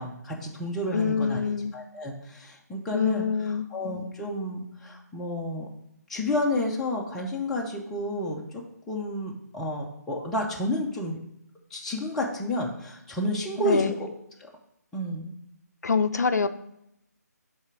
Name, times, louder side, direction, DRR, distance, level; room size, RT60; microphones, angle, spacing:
voice 1, 0.0-5.7 6.1-8.4 8.9-11.2 11.7-14.1 14.9-15.3, left 1 dB, 5° left, -3 dB, 0.4 m, -31 dB
voice 2, 0.9-1.7 2.9-3.7 13.6-14.0 15.8-16.5, left 5 dB, 65° left, 11 dB, 0.4 m, -25 dB
7.1 x 3.4 x 4.8 m, 0.80 s
figure-of-eight pair, 150°, 9 cm